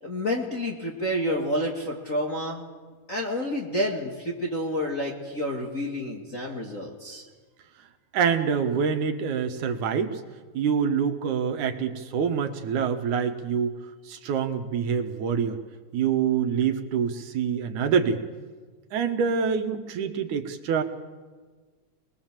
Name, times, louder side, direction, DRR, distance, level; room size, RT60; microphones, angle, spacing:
voice 1, 0.0-2.7 3.1-7.2, equal, 30° left, -1 dB, 2.1 m, -29 dB
voice 2, 8.1-10.2 10.5-13.8 14.1-15.6 15.9-18.2 18.9-20.8, right 7 dB, 85° right, 6 dB, 2.9 m, -26 dB
25.5 x 21.0 x 7.5 m, 1.4 s
omnidirectional pair, 3.4 m